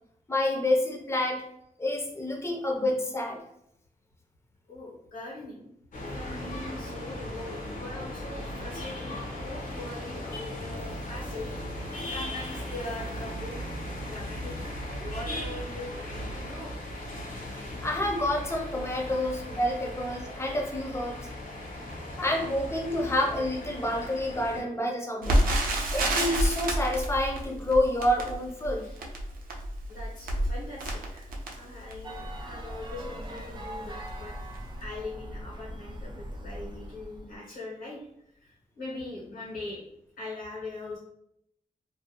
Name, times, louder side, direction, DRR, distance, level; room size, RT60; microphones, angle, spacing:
voice 1, 0.3-1.4 1.8-3.4 17.5-21.2 22.2-25.4 25.9-28.8, left 1 dB, 20° left, 1 dB, 0.5 m, -28 dB
voice 2, 4.7-5.7 6.1-11.5 12.0-13.5 14.1-14.5 15.0-16.7 28.8-29.0 29.9-34.3 34.8-38.1 38.4-39.8 40.2-41.0, left 2 dB, 90° left, -8 dB, 1.2 m, -41 dB
sound 1, 5.9-24.6, left 1 dB, 70° left, 0.7 m, -37 dB
Crackle, 25.2-32.2 32.8-32.9 33.2-33.4 34.0-34.3 34.5-34.6, right 1 dB, 85° right, 0.5 m, -29 dB
sound 2, 32.0-37.4, equal, 30° right, 0.4 m, -40 dB
2.5 x 2.2 x 2.8 m, 0.77 s
wide cardioid pair, 95°, 14 cm